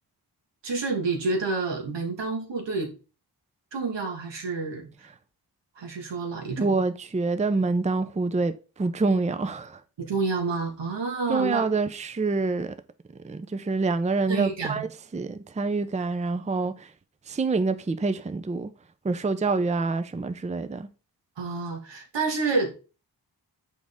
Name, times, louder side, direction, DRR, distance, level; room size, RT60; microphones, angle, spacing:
voice 1, 0.6-2.9 3.7-4.9 5.8-6.8 10.0-11.7 14.3-14.9 21.4-22.8, right 4 dB, 80° right, 1.6 m, -29 dB
voice 2, 6.6-8.5 8.8-9.8 11.3-12.7 13.2-14.9 15.1-16.9 17.3-18.7 19.0-20.9, right 3 dB, 15° right, 0.5 m, -26 dB
6.3 x 4.9 x 3.6 m
cardioid pair, 60°, 42 cm